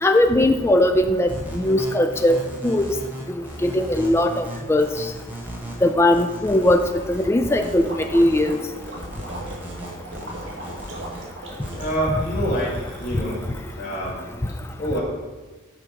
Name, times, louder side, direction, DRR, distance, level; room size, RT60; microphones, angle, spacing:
voice 1, 0.0-2.9 3.6-4.9 5.8-6.8 7.1-8.6, left 1 dB, 10° left, 6 dB, 0.3 m, -19 dB
sound 1, 1.3-11.9, right 1 dB, 10° right, 1.1 m, -36 dB
Gurgling, 6.9-13.8, right 1 dB, 55° right, 1.5 m, -39 dB
voice 2, 11.8-13.4 13.8-14.2 14.8-15.0, equal, 40° left, -6 dB, 1.8 m, -26 dB
6.1 x 5.1 x 4.5 m, 1.3 s
head